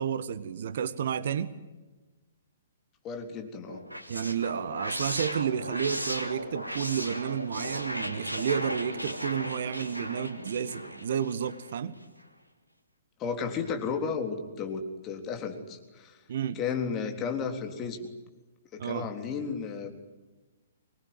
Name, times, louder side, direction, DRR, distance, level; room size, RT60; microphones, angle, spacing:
voice 1, 0.0-1.5 4.1-12.0 16.3-16.6 18.8-19.1, right 8 dB, 55° right, 14 dB, 1.4 m, -31 dB
voice 2, 3.0-3.8 13.2-16.2 16.6-18.0 18.7-19.9, left 6 dB, 25° left, 4 dB, 3.7 m, -33 dB
sound 1, 3.7-11.7, equal, 90° right, 2.9 m, -36 dB
24.5 x 21.5 x 9.7 m, 1.2 s
figure-of-eight pair, 120°, 0 cm